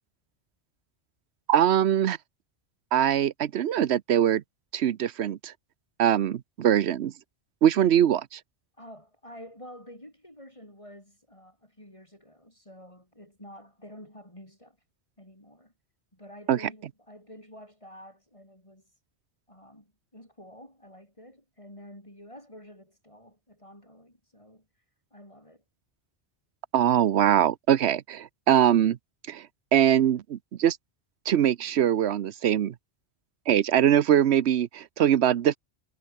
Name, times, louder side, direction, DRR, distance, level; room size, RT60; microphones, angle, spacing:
voice 1, 1.5-2.2 2.9-4.4 4.7-5.5 6.0-7.1 7.6-8.4 16.5-16.6 26.7-29.0 29.3-29.5 29.7-30.8 31.3-32.7 33.5-35.6, right 10 dB, 85° right, 1.0 m, -22 dB
voice 2, 8.8-14.8 15.2-15.7 16.1-18.9 19.5-24.7 25.1-25.6, equal, 30° left, 6.8 m, -49 dB
omnidirectional pair, 1.1 m